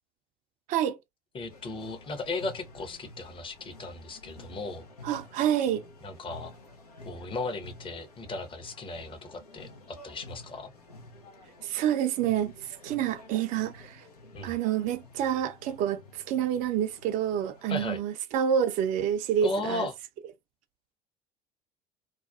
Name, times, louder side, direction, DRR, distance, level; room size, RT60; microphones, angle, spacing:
voice 1, 1.3-4.8 6.0-6.5 7.0-10.7 14.3-14.5 17.7-18.0 19.4-19.9, left 3 dB, 25° left, 0.8 m, -36 dB
sound 1, 1.5-17.9, left 2 dB, 90° left, 0.6 m, -50 dB
voice 2, 5.0-5.8 11.6-14.0 14.4-19.9, right 9 dB, 45° right, 0.4 m, -28 dB
2.4 x 2.2 x 2.4 m
figure-of-eight pair, 65°, 19 cm